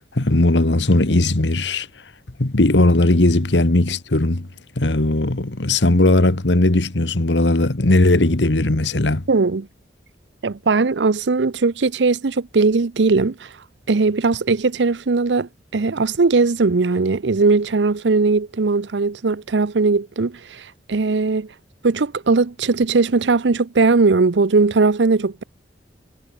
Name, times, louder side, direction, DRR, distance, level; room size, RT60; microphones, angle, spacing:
voice 1, 0.1-1.9 2.4-4.5 4.8-9.2, left 2 dB, 80° left, 1.5 m, -17 dB
voice 2, 9.3-9.7 10.4-13.5 13.9-21.5 21.8-25.4, right 4 dB, 80° right, 0.7 m, -19 dB
head